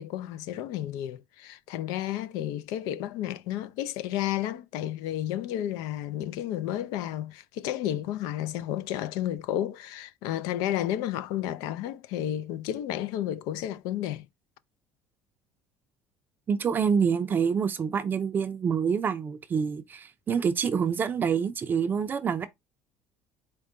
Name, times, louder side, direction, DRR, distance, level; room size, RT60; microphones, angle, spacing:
voice 1, 0.0-14.3, left 12 dB, 80° left, 0.4 m, -32 dB
voice 2, 16.5-22.5, right 6 dB, 30° right, 0.4 m, -26 dB
4.5 x 2.1 x 3.7 m
cardioid pair, 125°, 6 cm